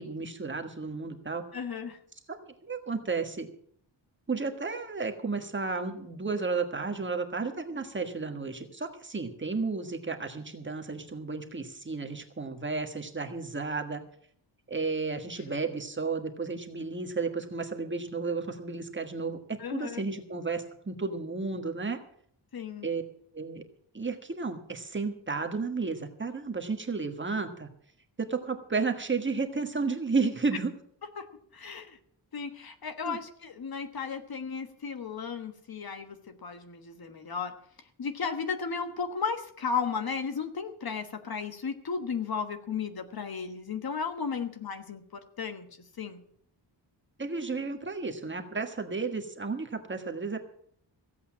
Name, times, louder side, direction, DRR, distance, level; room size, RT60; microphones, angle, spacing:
voice 1, 0.0-1.5 2.3-2.4 2.6-3.5 4.3-14.0 14.7-22.0 22.8-23.0 23.3-23.6 23.9-27.7 28.2-30.7 33.0-33.2 47.2-50.4, right 4 dB, 25° right, 4 dB, 1.5 m, -32 dB
voice 2, 1.5-2.0 19.6-20.0 22.5-22.9 31.2-31.3 31.5-32.0 32.3-37.5 38.0-45.7 46.0-46.2, left 5 dB, 50° left, 7 dB, 1.4 m, -34 dB
15.5 x 8.3 x 7.4 m, 0.62 s
wide cardioid pair, 155°, 46 cm